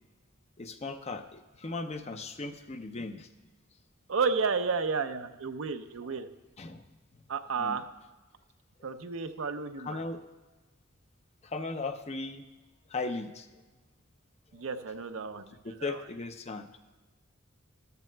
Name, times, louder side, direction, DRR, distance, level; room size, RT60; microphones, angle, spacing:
voice 1, 0.6-3.3 6.6-6.8 7.6-7.8 9.8-10.2 11.4-12.4 12.9-13.5 15.6-16.7, left 3 dB, 30° left, 7 dB, 0.6 m, -37 dB
voice 2, 4.1-6.3 7.3-7.8 8.8-10.0 14.5-15.5 15.8-16.0, right 5 dB, 75° right, 8 dB, 0.6 m, -32 dB
13.5 x 13.0 x 2.2 m, 1.2 s
head